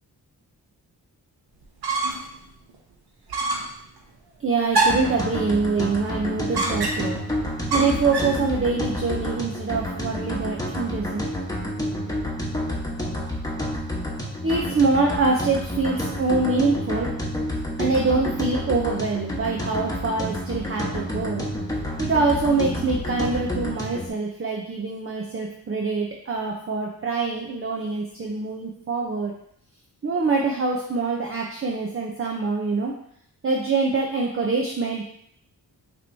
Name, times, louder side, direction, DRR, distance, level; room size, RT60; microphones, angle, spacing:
sound 1, 1.6-2.4 2.7-2.8 3.3-3.8 4.7-5.2 6.5-7.2 7.7-8.4, right 3 dB, 80° right, 1.0 m, -25 dB
voice 1, 4.4-7.2 7.7-11.2 14.4-17.1 17.8-21.4 22.0-29.3 30.0-32.9 33.4-35.0, right 3 dB, 35° right, -1 dB, 0.7 m, -24 dB
sound 2, 4.9-24.1, equal, 10° left, 1.2 m, -29 dB
6.4 x 3.1 x 2.7 m, 0.68 s
cardioid pair, 75°, 38 cm